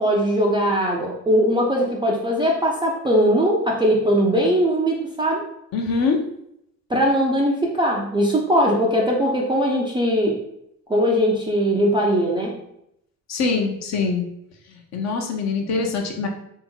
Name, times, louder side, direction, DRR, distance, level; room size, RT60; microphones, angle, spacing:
voice 1, 0.0-5.5 6.9-10.4 10.9-12.5, equal, 10° right, -2 dB, 0.5 m, -20 dB
voice 2, 5.7-6.2 13.3-14.3 14.9-16.3, left 4 dB, 35° left, 3 dB, 0.7 m, -23 dB
3.5 x 2.8 x 4.2 m, 0.76 s
figure-of-eight pair, 60°, 49 cm